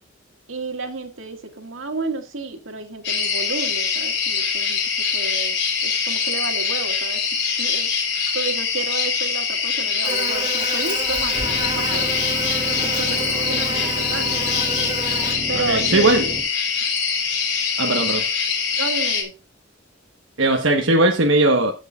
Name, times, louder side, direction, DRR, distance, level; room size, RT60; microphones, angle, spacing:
voice 1, 0.5-5.6 5.8-7.2 7.6-7.9 8.3-12.0 12.8-14.5 15.5-16.3 17.8-18.0 18.7-19.3, right 3 dB, 85° right, 2.0 m, -31 dB
sound 1, 3.0-19.2, left 5 dB, 60° left, 3.5 m, -23 dB
Buzz, 10.0-15.3, right 3 dB, 20° right, 2.8 m, -30 dB
sound 2, 11.3-16.4, equal, 15° left, 4.2 m, -33 dB
voice 2, 15.5-16.3 17.8-18.3 20.4-21.7, right 2 dB, 70° right, 1.2 m, -18 dB
15.5 x 6.6 x 2.4 m
head